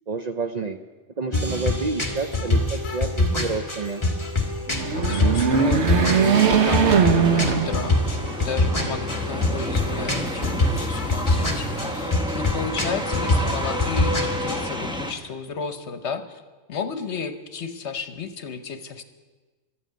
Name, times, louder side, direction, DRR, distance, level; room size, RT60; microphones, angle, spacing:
voice 1, 0.1-0.8 1.2-4.0, right 4 dB, 50° right, 7 dB, 0.5 m, -29 dB
sound 1, 1.3-14.6, left 2 dB, 25° left, 1.9 m, -25 dB
sound 2, 4.7-8.3 8.8-8.9 9.9-10.7, right 6 dB, 70° right, 1.3 m, -20 dB
voice 2, 5.0-7.0 7.3-8.0 8.4-14.1 14.4-16.4 16.7-19.0, left 5 dB, 70° left, 9 dB, 1.2 m, -33 dB
sound 3, 6.2-15.1, equal, 5° right, 1.0 m, -31 dB
13.0 x 9.1 x 9.3 m, 1.3 s
omnidirectional pair, 1.2 m